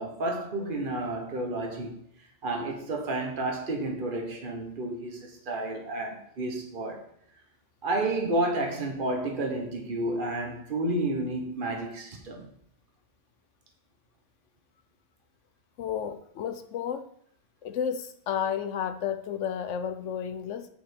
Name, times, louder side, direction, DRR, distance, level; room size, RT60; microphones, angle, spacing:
voice 1, 0.0-2.0 2.4-7.0 7.8-12.5, right 2 dB, 45° right, 2 dB, 1.5 m, -31 dB
voice 2, 15.8-17.0 17.6-20.7, left 8 dB, 85° left, 8 dB, 1.1 m, -32 dB
5.8 x 5.3 x 6.5 m, 0.68 s
omnidirectional pair, 1.2 m